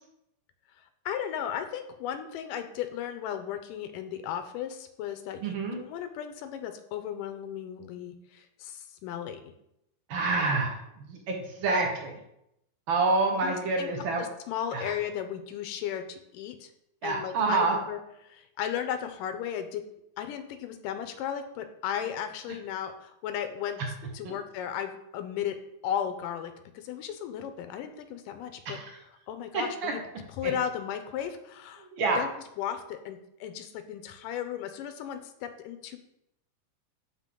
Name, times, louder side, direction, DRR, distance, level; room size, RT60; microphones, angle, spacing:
voice 1, 1.1-9.5 13.4-13.9 14.2-16.7 17.0-19.8 20.2-23.8 24.1-25.6 25.8-28.8 29.3-30.0 30.4-31.9 32.2-32.3 32.6-36.0, left 9 dB, 85° left, 8 dB, 2.3 m, -35 dB
voice 2, 5.4-5.8 10.1-12.1 12.9-14.3 14.7-14.9 17.0-17.8 24.2-24.3 28.6-28.9 29.5-29.9 30.4-30.5 31.8-32.2, right 3 dB, 65° right, 1 dB, 1.2 m, -28 dB
11.0 x 4.4 x 3.8 m, 0.82 s
omnidirectional pair, 3.9 m